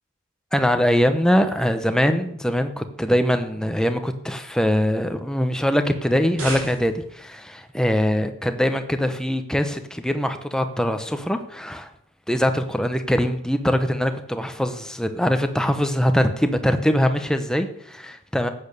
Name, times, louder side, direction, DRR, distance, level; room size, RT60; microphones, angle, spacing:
voice 1, 0.5-11.9 12.3-18.5, equal, 5° left, 7 dB, 0.9 m, -22 dB
sound 1, 6.1-7.2, right 2 dB, 75° right, 7.4 m, -34 dB
14.0 x 8.9 x 6.7 m, 0.70 s
head